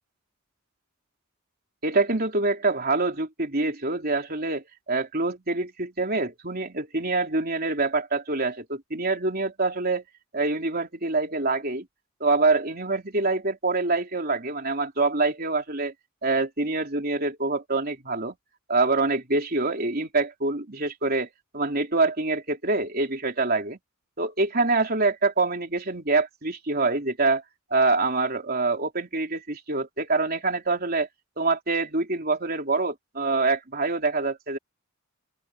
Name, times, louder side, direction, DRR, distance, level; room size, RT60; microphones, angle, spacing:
voice 1, 1.8-10.0 10.3-11.9 12.2-15.9 16.2-18.4 18.7-21.3 21.5-23.8 24.2-27.4 27.7-31.1 31.4-34.6, right 3 dB, 45° right, 3.7 m, -25 dB
open air
head